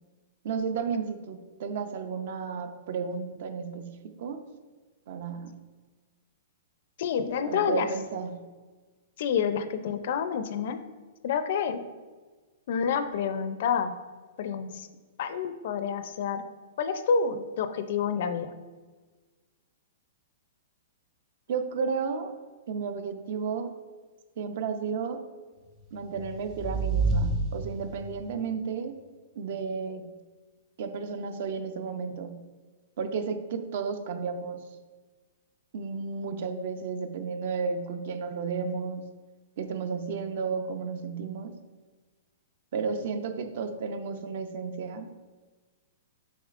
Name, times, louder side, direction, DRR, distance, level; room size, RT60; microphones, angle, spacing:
voice 1, 0.4-4.4 5.1-5.5 7.4-8.4 21.5-22.3 22.7-23.7 24.4-25.2 25.9-29.0 29.4-30.1 30.8-32.4 33.0-34.8 35.7-39.0 39.6-41.6 42.7-45.1, right 5 dB, 50° right, 9 dB, 0.5 m, -33 dB
voice 2, 7.0-7.9 9.2-10.8 11.2-11.8 12.7-13.9 14.4-14.9 15.2-16.4 16.8-18.5, left 6 dB, 50° left, 10 dB, 0.4 m, -28 dB
sound 1, 25.9-28.2, right 3 dB, 25° right, 0.8 m, -29 dB
7.1 x 5.8 x 2.4 m, 1.3 s
hypercardioid pair, 165°, 0 cm